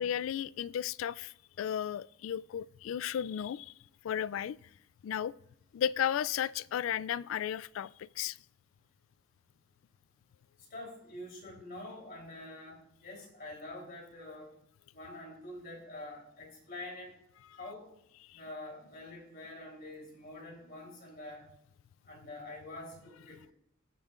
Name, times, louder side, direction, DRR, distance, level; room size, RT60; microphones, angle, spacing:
voice 1, 0.0-3.7 4.0-4.6 5.0-5.3 5.7-8.4 18.3-18.4, left 9 dB, 80° left, 0.3 m, -34 dB
voice 2, 10.7-14.5 14.9-17.1 17.6-17.9 18.3-21.5 22.0-23.4, left 1 dB, 50° left, 3.5 m, -46 dB
17.5 x 7.1 x 2.5 m
head